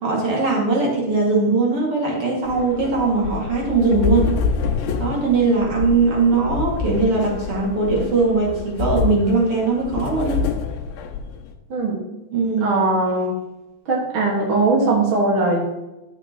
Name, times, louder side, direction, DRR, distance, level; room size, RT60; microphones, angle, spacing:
voice 1, 0.0-4.3 5.0-10.4 12.3-12.7, right 3 dB, 40° right, -3 dB, 2.4 m, -20 dB
sound 1, 2.5-11.5, left 5 dB, 80° left, 3.0 m, -27 dB
voice 2, 12.6-13.3 13.8-15.6, right 3 dB, 65° right, -3 dB, 1.2 m, -19 dB
12.5 x 7.2 x 3.0 m, 0.96 s
omnidirectional pair, 5.1 m